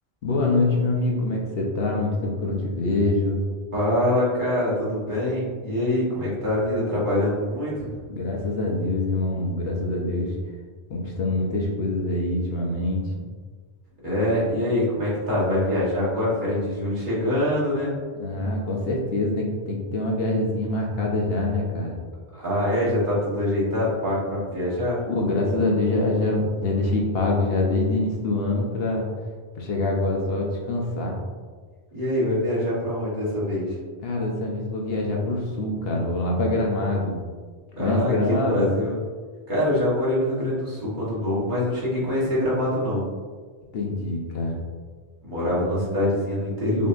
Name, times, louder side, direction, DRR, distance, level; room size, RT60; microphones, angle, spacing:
voice 1, 0.2-3.4 8.1-10.3 10.9-13.0 18.1-22.0 25.0-29.1 29.5-31.1 34.0-37.1 37.8-38.7 43.7-44.6, left 2 dB, 65° left, -1 dB, 0.9 m, -25 dB
voice 2, 3.7-7.9 14.0-17.9 18.4-18.5 22.3-25.0 31.9-33.8 37.8-39.0 39.5-43.1 45.2-46.9, left 1 dB, 50° right, -8 dB, 1.4 m, -24 dB
5.3 x 2.7 x 2.5 m, 1.5 s
omnidirectional pair, 1.1 m